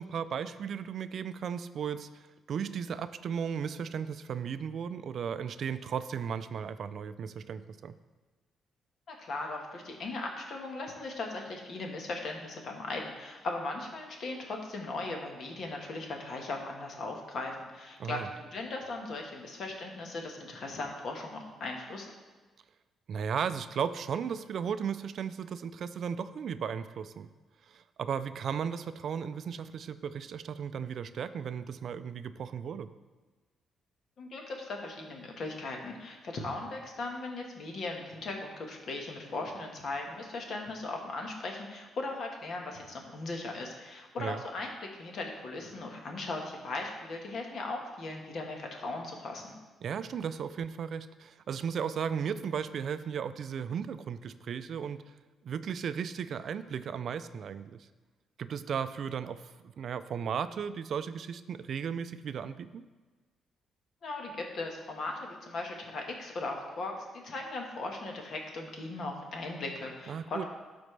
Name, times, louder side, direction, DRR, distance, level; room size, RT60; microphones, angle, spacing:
voice 1, 0.0-7.9 18.0-18.3 23.1-27.3 27.7-32.9 44.2-44.4 49.8-55.0 55.4-57.9 58.4-59.4 59.8-62.8 70.1-70.4, right 7 dB, 60° right, 12 dB, 0.3 m, -35 dB
voice 2, 9.1-22.1 34.2-49.6 64.0-70.5, left 2 dB, 60° left, 1 dB, 1.4 m, -38 dB
12.0 x 4.3 x 3.2 m, 1.3 s
cardioid pair, 90°, 0 cm